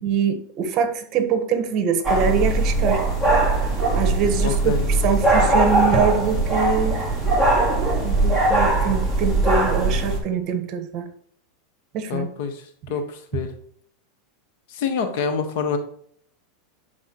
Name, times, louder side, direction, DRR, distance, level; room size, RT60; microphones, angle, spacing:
voice 1, 0.0-3.0 3.9-7.0 8.0-11.1 11.9-12.3, right 6 dB, 45° right, 8 dB, 1.3 m, -24 dB
sound 1, 2.0-10.2, right 2 dB, 10° left, 3.2 m, -20 dB
voice 2, 4.4-4.9 12.1-12.6 12.9-13.5 14.8-15.8, left 6 dB, 65° left, 8 dB, 1.4 m, -26 dB
11.5 x 4.7 x 3.1 m, 0.63 s
supercardioid pair, 130°, 0 cm